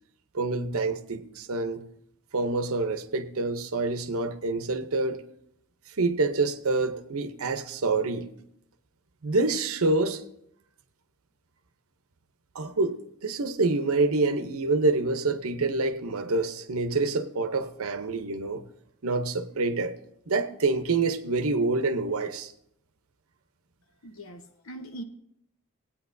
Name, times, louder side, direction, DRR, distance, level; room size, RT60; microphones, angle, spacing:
voice 1, 0.3-1.8 2.3-5.2 6.0-8.3 9.2-10.2 12.5-18.6 19.0-19.9 20.3-22.5, right 3 dB, 75° right, 0.8 m, -27 dB
voice 2, 24.0-25.0, right 1 dB, 65° left, 0.9 m, -41 dB
20.0 x 8.7 x 2.6 m
head